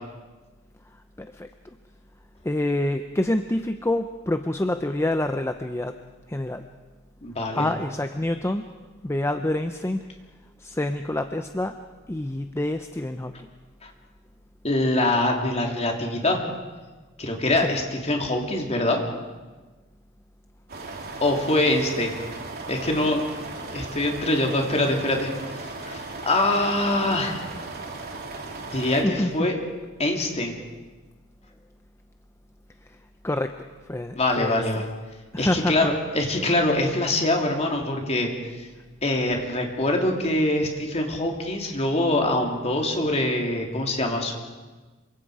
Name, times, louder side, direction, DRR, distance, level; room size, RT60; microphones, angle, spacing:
voice 1, 1.2-1.5 2.4-6.0 6.3-6.6 7.5-8.7 9.0-10.0 10.6-11.8 12.1-13.3 17.6-17.7 28.5-28.6 29.0-29.3 33.2-33.6 33.9-34.6 35.3-35.8, left 1 dB, 15° left, 8 dB, 0.7 m, -27 dB
voice 2, 7.2-7.7 13.8-13.9 14.6-16.4 17.2-19.0 21.2-22.1 22.7-23.2 23.7-25.3 25.6-27.4 28.7-29.5 30.0-30.6 34.1-34.8 35.4-38.3 39.0-44.4, left 1 dB, 30° left, 2 dB, 3.1 m, -24 dB
sound 1, 20.7-29.0, right 3 dB, 50° right, 3.1 m, -37 dB
27.0 x 24.5 x 5.0 m, 1.3 s
head